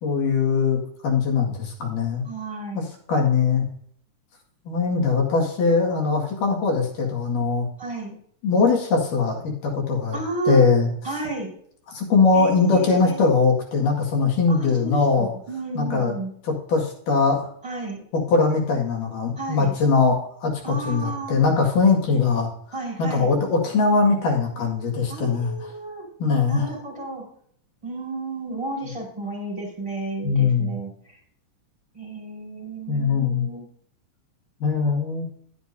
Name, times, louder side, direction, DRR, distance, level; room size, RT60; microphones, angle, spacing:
voice 1, 0.0-2.2 2.7-3.7 4.7-7.7 8.4-10.2 10.5-10.9 11.9-15.3 15.8-16.1 16.4-17.5 18.1-22.5 23.0-25.7 26.2-26.7 30.2-30.8 32.9-33.5 34.6-35.3, left 4 dB, 85° left, 0 dB, 3.7 m, -21 dB
voice 2, 2.2-2.8 7.8-8.1 10.1-10.6 11.0-11.5 12.3-13.3 14.5-16.3 17.6-18.0 19.4-19.7 20.6-21.4 22.7-23.3 25.1-26.1 26.5-27.2 27.8-31.2 31.9-33.7, right 3 dB, 10° right, -3 dB, 4.6 m, -32 dB
11.0 x 10.5 x 2.7 m, 0.62 s
omnidirectional pair, 3.6 m